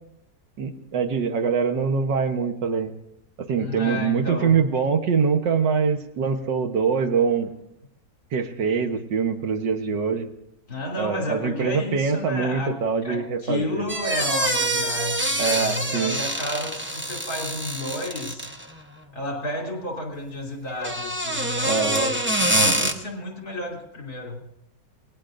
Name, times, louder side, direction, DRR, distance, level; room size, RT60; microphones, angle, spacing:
voice 1, 0.6-2.9 3.5-7.5 8.3-10.3 11.0-13.8 15.4-16.2 21.6-22.1, right 6 dB, 70° right, 5 dB, 1.8 m, -24 dB
voice 2, 3.6-4.7 10.7-18.5 19.1-24.4, left 1 dB, 55° left, 0 dB, 3.5 m, -32 dB
sound 1, 13.9-18.7 20.7-22.9, right 1 dB, 15° right, 0.4 m, -25 dB
28.0 x 19.0 x 2.6 m, 0.83 s
omnidirectional pair, 2.0 m